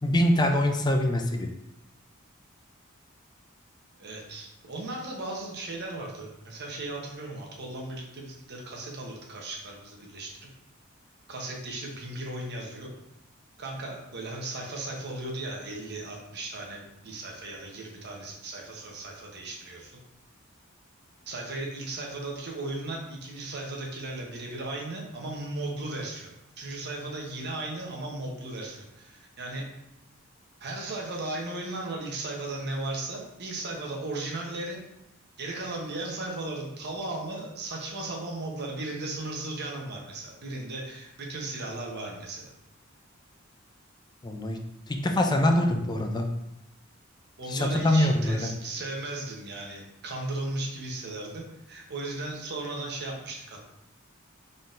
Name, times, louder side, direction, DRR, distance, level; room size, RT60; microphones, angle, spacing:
voice 1, 0.0-1.5 44.2-44.6 44.9-46.3 47.5-48.5, left 1 dB, 20° left, 4 dB, 0.4 m, -24 dB
voice 2, 4.0-10.3 11.3-12.9 13.6-20.0 21.3-29.6 30.6-34.8 35.4-42.5 47.4-53.7, right 2 dB, 55° right, 0 dB, 0.8 m, -36 dB
3.9 x 3.9 x 2.5 m, 0.88 s
head